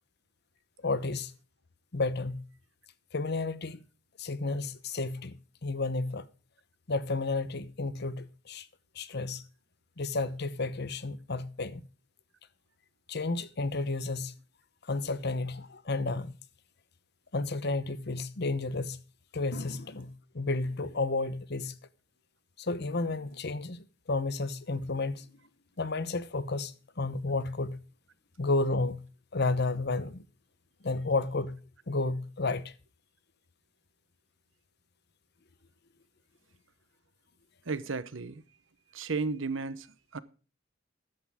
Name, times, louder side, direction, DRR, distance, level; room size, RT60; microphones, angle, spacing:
voice 1, 0.8-1.3 1.9-2.4 3.1-3.8 4.2-5.3 5.6-6.3 6.9-8.7 9.0-9.4 10.0-11.9 13.1-14.3 14.9-16.3 17.3-19.0 19.3-21.7 22.6-25.2 25.8-26.7 27.0-27.8 28.4-29.1 29.3-30.2 30.8-31.6 31.9-32.6, left 3 dB, 60° left, 1.0 m, -31 dB
voice 2, 37.7-38.4 38.9-39.9 40.1-40.2, right 4 dB, 90° right, 1.0 m, -33 dB
13.5 x 10.5 x 3.6 m
head